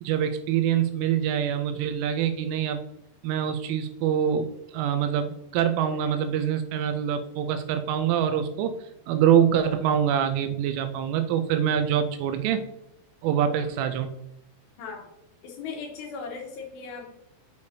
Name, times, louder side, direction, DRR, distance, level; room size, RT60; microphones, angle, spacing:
voice 1, 0.0-2.8 3.2-8.8 9.1-12.6 13.2-14.1, right 9 dB, 85° right, 8 dB, 3.0 m, -25 dB
voice 2, 15.4-17.1, left 5 dB, 75° left, -1 dB, 2.7 m, -37 dB
6.9 x 6.4 x 2.7 m, 0.87 s
omnidirectional pair, 5.7 m